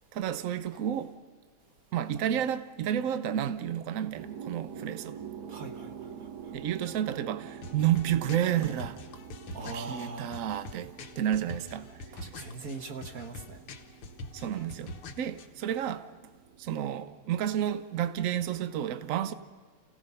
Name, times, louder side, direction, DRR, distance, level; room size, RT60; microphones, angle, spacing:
voice 1, 0.1-1.2 1.9-5.2 6.2-9.0 9.7-11.9 12.2-12.3 14.3-16.1 16.6-19.3, right 10 dB, 90° right, 0.7 m, -31 dB
sound 1, 4.1-17.7, right 7 dB, 65° right, 1.1 m, -47 dB
voice 2, 5.5-6.5 9.5-10.3 12.1-13.6, right 3 dB, 50° right, 1.4 m, -41 dB
sound 2, 7.5-15.5, left 2 dB, 85° left, 2.1 m, -45 dB
28.5 x 16.5 x 5.5 m
omnidirectional pair, 2.3 m